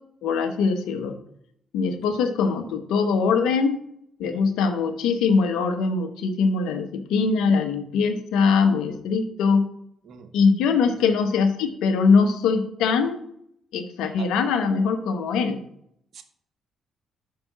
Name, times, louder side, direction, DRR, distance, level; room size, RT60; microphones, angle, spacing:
voice 1, 0.2-1.2 1.7-3.8 4.2-9.7 10.3-13.2 13.7-15.6, left 5 dB, 75° left, 6 dB, 1.0 m, -22 dB
voice 2, 2.0-2.1 4.2-4.4 10.0-10.3 10.9-11.1 14.2-14.3 16.1-16.2, right 7 dB, 60° right, 7 dB, 1.1 m, -44 dB
5.6 x 5.3 x 6.1 m, 0.70 s
hypercardioid pair, 50°, 0 cm